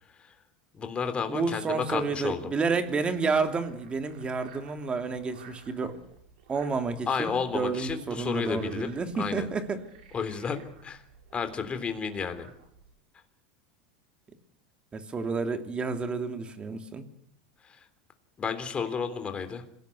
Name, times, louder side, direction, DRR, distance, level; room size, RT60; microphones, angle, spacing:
voice 1, 0.7-2.4 7.1-8.9 9.2-9.5 10.1-11.0 11.3-12.5 17.6-17.8 18.4-19.6, left 6 dB, 20° left, 8 dB, 3.4 m, -32 dB
voice 2, 1.3-6.0 6.5-9.8 14.9-17.0, right 4 dB, 20° right, 7 dB, 2.8 m, -30 dB
Frog, 2.6-12.9, right 6 dB, 80° right, 6.6 m, -54 dB
26.0 x 17.5 x 8.3 m, 0.68 s
supercardioid pair, 130°, 5 cm